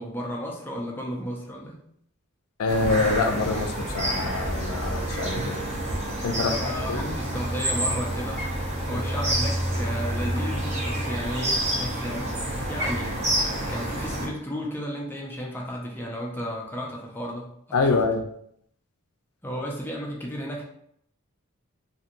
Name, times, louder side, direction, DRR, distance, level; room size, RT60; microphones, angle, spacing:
voice 1, 0.0-1.8 6.3-8.4 8.8-12.3 12.7-18.0 19.4-20.6, equal, 10° left, -2 dB, 0.5 m, -34 dB
voice 2, 2.6-5.6 6.2-7.1 8.9-9.0 17.7-18.2, left 3 dB, 75° left, 6 dB, 0.4 m, -26 dB
sound 1, 2.7-14.3, right 1 dB, 30° right, 0.7 m, -28 dB
2.9 x 2.6 x 2.5 m, 0.70 s
head